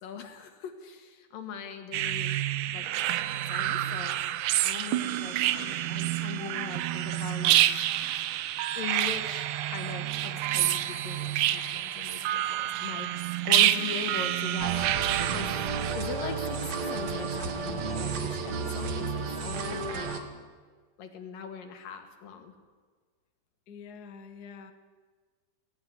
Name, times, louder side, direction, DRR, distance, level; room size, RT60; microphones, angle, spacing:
voice 1, 0.0-2.4 2.7-2.9 3.5-4.2 4.6-7.6 8.8-15.6 15.9-20.5 21.0-22.5, left 7 dB, 75° left, 6 dB, 3.6 m, -40 dB
sound 1, 1.9-15.9, right 13 dB, 75° right, 2.1 m, -28 dB
sound 2, 14.6-20.2, right 5 dB, 55° right, 2.6 m, -32 dB
voice 2, 23.7-24.7, left 6 dB, 50° left, 7 dB, 1.1 m, -46 dB
18.0 x 18.0 x 9.6 m, 1.5 s
omnidirectional pair, 4.0 m